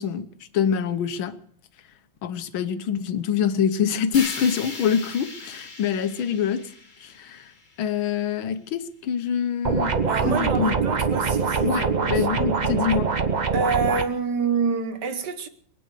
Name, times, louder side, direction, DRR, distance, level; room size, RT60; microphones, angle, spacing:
voice 1, 0.0-1.4 2.2-6.7 7.0-7.5 7.8-10.0 10.2-10.7 11.6-13.1, left 7 dB, 80° left, 1.7 m, -25 dB
sound 1, 4.1-8.2, left 3 dB, 25° left, 1.6 m, -38 dB
sound 2, 9.6-14.0, right 5 dB, 45° right, 0.5 m, -23 dB
voice 2, 10.1-12.3 13.5-15.5, right 5 dB, 60° right, 1.5 m, -27 dB
23.0 x 9.0 x 6.5 m
omnidirectional pair, 2.2 m